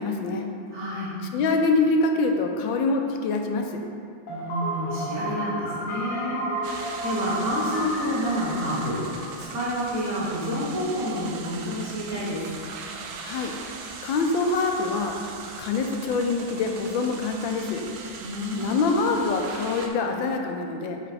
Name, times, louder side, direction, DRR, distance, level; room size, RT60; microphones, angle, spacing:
voice 1, 0.0-0.5 1.3-3.8 13.2-13.6 14.0-15.2 15.6-17.8 18.6-21.0, left 3 dB, 80° left, 4 dB, 1.4 m, -25 dB
voice 2, 0.7-1.1 4.3-12.5 18.2-18.9, equal, 50° right, -11 dB, 1.7 m, -29 dB
sound 1, 4.3-10.1, right 1 dB, 60° left, 0.8 m, -32 dB
sound 2, 6.6-19.9, right 5 dB, 80° right, 1.4 m, -40 dB
8.5 x 3.3 x 4.2 m, 2.4 s
omnidirectional pair, 2.1 m